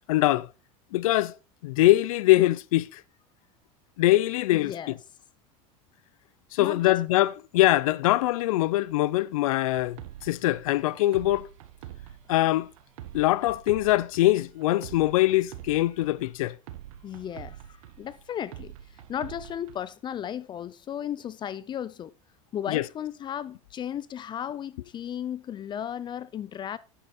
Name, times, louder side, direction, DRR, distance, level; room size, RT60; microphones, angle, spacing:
voice 1, 0.1-0.5 0.9-1.4 1.6-3.0 4.0-4.7 6.5-11.5 12.3-12.7 13.1-16.6 22.7-22.8, left 16 dB, 90° left, 0.5 m, -23 dB
voice 2, 4.5-5.0 6.6-7.0 17.0-22.1 22.5-26.8, left 9 dB, 25° left, 0.4 m, -35 dB
sound 1, 9.7-19.8, right 12 dB, 80° right, 1.5 m, -46 dB
9.6 x 7.9 x 4.1 m
supercardioid pair, 130°, 17 cm